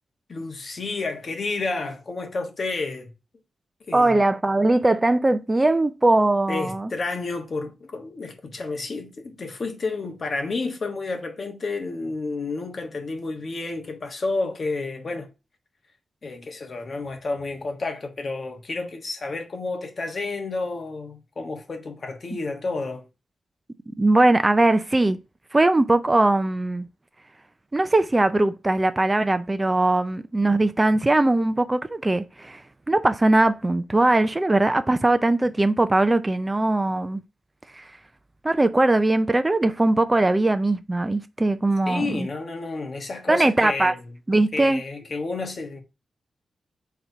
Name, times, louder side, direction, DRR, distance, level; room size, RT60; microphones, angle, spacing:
voice 1, 0.3-3.1 3.9-4.2 6.5-15.3 16.2-23.0 41.9-44.1 44.5-45.8, left 3 dB, 40° left, 1.3 m, -30 dB
voice 2, 3.9-6.9 24.0-25.2 25.5-26.9 27.7-32.6 32.9-37.2 37.8-37.9 38.4-42.3 43.3-43.9 44.3-44.8, right 2 dB, 15° right, 0.4 m, -20 dB
4.4 x 4.1 x 5.4 m
wide cardioid pair, 145°, 0 cm